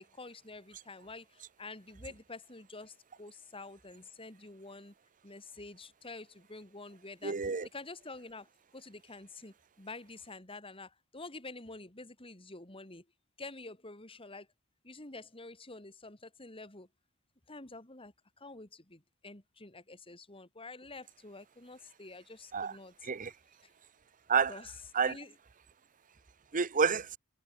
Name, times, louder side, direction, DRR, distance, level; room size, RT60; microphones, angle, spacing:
voice 1, 0.0-4.9 5.2-7.3 7.7-8.5 8.7-13.0 13.4-14.5 14.8-16.9 17.5-23.1 24.5-24.7 25.0-25.3, left 3 dB, 25° left, 3.2 m, -48 dB
voice 2, 7.2-7.7 22.5-22.7 23.0-23.3 24.3-24.5 24.9-25.1 26.5-27.2, right 5 dB, 35° right, 0.7 m, -29 dB
head